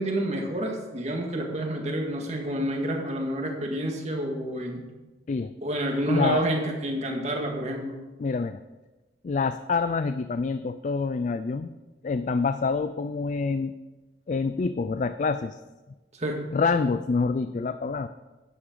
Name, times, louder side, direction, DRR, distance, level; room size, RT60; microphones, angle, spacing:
voice 1, 0.0-4.9 5.6-8.0 16.1-16.4, right 1 dB, 40° right, 1 dB, 1.8 m, -29 dB
voice 2, 6.1-6.4 8.2-8.6 9.2-11.7 12.0-13.7 14.3-15.6 16.5-18.1, left 4 dB, 45° left, 11 dB, 0.3 m, -26 dB
12.0 x 9.5 x 3.9 m, 1.2 s
head